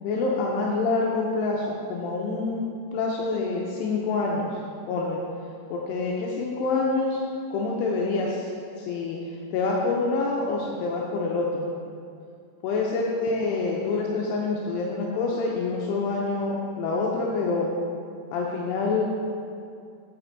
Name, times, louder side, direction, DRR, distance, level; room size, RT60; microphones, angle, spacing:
voice 1, 0.0-2.6 2.9-4.5 4.9-5.2 5.7-7.2 7.5-8.5 8.8-9.2 9.5-11.7 12.6-17.7 18.3-19.1, left 3 dB, 80° left, -2 dB, 2.7 m, -26 dB
8.8 x 7.9 x 4.0 m, 2.3 s
omnidirectional pair, 5.1 m